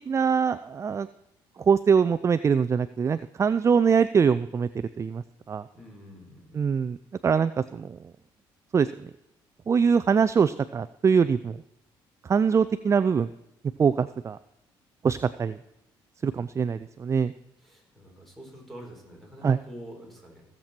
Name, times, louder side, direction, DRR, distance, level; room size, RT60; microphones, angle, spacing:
voice 1, 0.1-1.1 1.6-4.7 5.0-5.6 6.5-7.0 7.2-8.0 8.7-8.9 9.7-11.6 12.2-13.3 13.8-14.4 15.0-15.6 16.2-17.3 19.4-19.6, right 6 dB, 30° right, 14 dB, 0.4 m, -23 dB
voice 2, 5.7-6.7 17.6-20.5, equal, ahead, -1 dB, 4.4 m, -46 dB
17.0 x 7.5 x 4.4 m, 0.85 s
cardioid pair, 90°, 9 cm